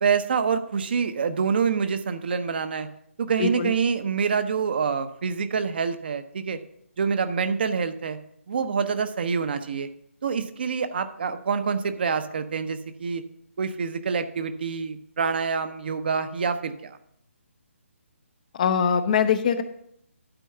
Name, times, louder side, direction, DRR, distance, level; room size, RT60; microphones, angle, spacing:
voice 1, 0.0-2.9 3.2-6.6 7.0-8.2 8.5-9.9 10.2-13.2 13.6-17.0, right 6 dB, 45° right, 9 dB, 0.7 m, -26 dB
voice 2, 3.4-3.7 18.6-19.6, left 7 dB, 35° left, 11 dB, 0.7 m, -22 dB
11.5 x 4.6 x 5.6 m, 0.71 s
figure-of-eight pair, 145°, 7 cm